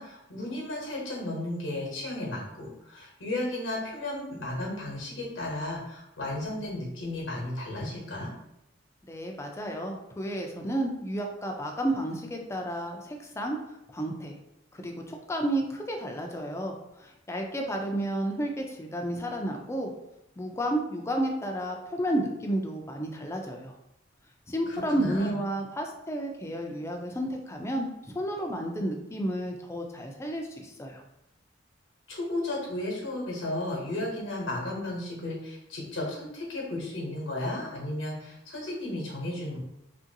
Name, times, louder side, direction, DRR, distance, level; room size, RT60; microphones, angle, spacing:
voice 1, 0.0-8.3 24.7-25.4 32.1-39.6, left 1 dB, 85° left, -2 dB, 0.9 m, -34 dB
voice 2, 9.1-13.6 13.9-14.4 14.7-19.9 20.4-23.7 24.5-27.9 28.1-31.0, right 1 dB, 15° left, 2 dB, 0.4 m, -31 dB
2.9 x 2.5 x 2.7 m, 0.86 s
head